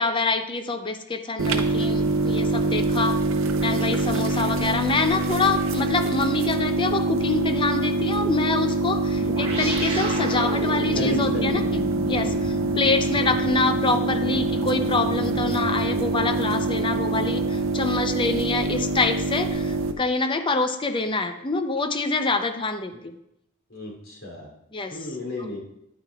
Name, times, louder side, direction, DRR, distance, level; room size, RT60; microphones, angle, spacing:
voice 1, 0.0-3.2 3.6-12.3 12.8-23.1 24.7-24.9, left 3 dB, 25° left, 7 dB, 0.5 m, -26 dB
sound 1, 1.4-19.9, right 2 dB, 70° right, 0.7 m, -25 dB
sound 2, 9.2-18.0, equal, 30° right, 1.3 m, -35 dB
voice 2, 10.9-11.6 12.2-12.5 22.9-23.0 23.7-24.5 24.9-25.6, left 1 dB, 75° left, -2 dB, 2.9 m, -33 dB
9.9 x 9.0 x 2.4 m, 0.80 s
head